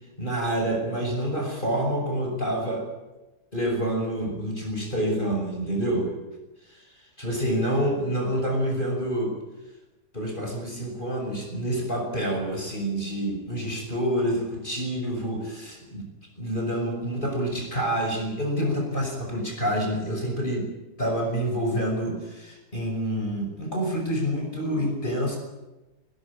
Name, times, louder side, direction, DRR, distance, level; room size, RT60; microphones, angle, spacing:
voice 1, 0.2-2.9 3.5-6.1 6.7-6.9 7.2-9.3 10.1-16.1 16.4-20.7 21.0-25.4, equal, 30° left, 1 dB, 6.2 m, -27 dB
20.0 x 19.5 x 8.8 m, 1.1 s
omnidirectional pair, 1.8 m